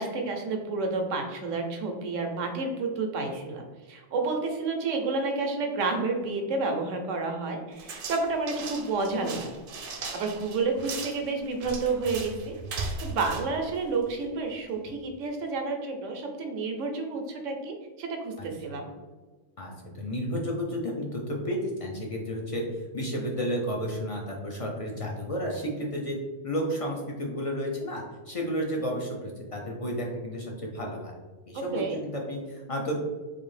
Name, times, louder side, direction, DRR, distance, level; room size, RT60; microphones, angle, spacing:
voice 1, 0.0-9.5 10.1-12.5 13.0-18.9 31.5-32.0, right 3 dB, 90° right, 3 dB, 1.0 m, -30 dB
sound 1, 7.8-14.3, right 3 dB, 55° right, 0.7 m, -38 dB
voice 2, 19.6-22.6 22.9-26.2 26.4-31.1 31.5-33.0, equal, 45° left, -1 dB, 0.4 m, -32 dB
4.0 x 2.6 x 3.2 m, 1.3 s
omnidirectional pair, 1.2 m